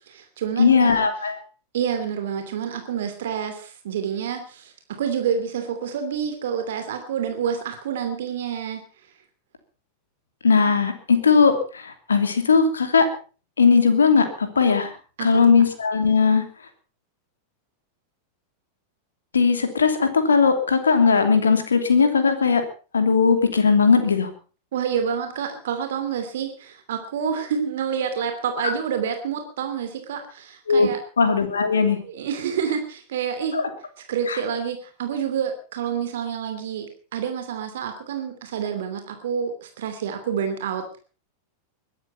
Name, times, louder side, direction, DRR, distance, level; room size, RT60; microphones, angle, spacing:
voice 1, 0.0-1.1 1.7-8.8 15.2-15.4 24.7-31.0 32.0-33.5 34.1-41.0, right 7 dB, 60° right, 7 dB, 2.8 m, -28 dB
voice 2, 0.6-1.4 10.4-13.1 13.6-14.9 15.2-16.4 19.3-22.6 22.9-24.3 30.7-30.9 31.2-32.0 33.5-33.7 34.3-34.4, left 5 dB, 70° left, 8 dB, 2.8 m, -18 dB
21.5 x 12.5 x 5.4 m, 0.38 s
figure-of-eight pair, 90°, 0 cm